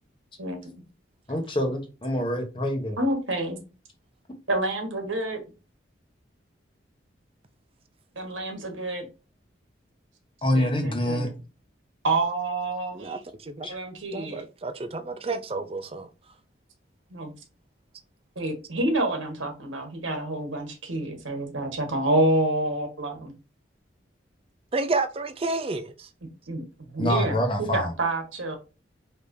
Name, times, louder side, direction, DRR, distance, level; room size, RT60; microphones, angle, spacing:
voice 1, 1.3-3.0 10.4-11.3 13.6-13.8 27.0-27.9, left 1 dB, 25° left, 1.0 m, -26 dB
voice 2, 3.0-3.6 4.5-5.4 8.1-9.1 10.5-11.3 12.0-13.2 13.7-14.4 17.1-17.3 18.3-23.3 26.5-26.6 26.9-28.6, right 2 dB, 90° right, 1.4 m, -28 dB
voice 3, 12.9-13.7 14.1-16.1 24.7-26.1, right 3 dB, 30° right, 0.5 m, -30 dB
4.9 x 3.6 x 2.7 m
head